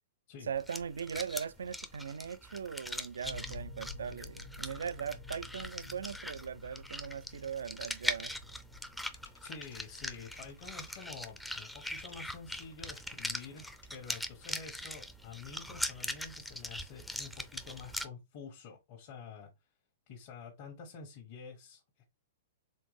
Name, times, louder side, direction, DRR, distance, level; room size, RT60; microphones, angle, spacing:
voice 1, 0.4-8.3, right 7 dB, 80° right, 0.3 m, -39 dB
sound 1, 0.5-18.1, left 1 dB, 5° left, 0.5 m, -41 dB
sound 2, 3.2-11.5, left 2 dB, 75° left, 1.5 m, -50 dB
sound 3, 9.1-12.1 12.6-14.0, left 4 dB, 90° left, 0.9 m, -58 dB
voice 2, 9.4-13.6 13.9-19.5 20.1-22.0, left 5 dB, 50° left, 1.2 m, -48 dB
4.3 x 3.5 x 3.2 m
hypercardioid pair, 125°, 0 cm